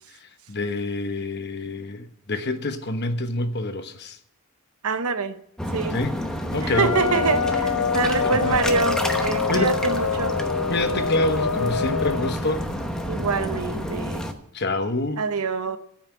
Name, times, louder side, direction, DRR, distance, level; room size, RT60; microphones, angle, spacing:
voice 1, 0.5-4.2 5.9-6.1 6.5-6.9 8.3-8.6 9.5-9.7 10.7-12.7 14.5-15.2, left 2 dB, 50° left, 1.1 m, -26 dB
voice 2, 4.8-5.4 5.7-6.0 6.6-10.4 13.1-14.3 15.2-15.8, right 4 dB, 80° right, 0.9 m, -25 dB
sound 1, 5.6-14.3, equal, 5° left, 0.9 m, -29 dB
sound 2, 6.7-12.3, left 6 dB, 85° left, 0.6 m, -26 dB
13.5 x 5.7 x 9.6 m
head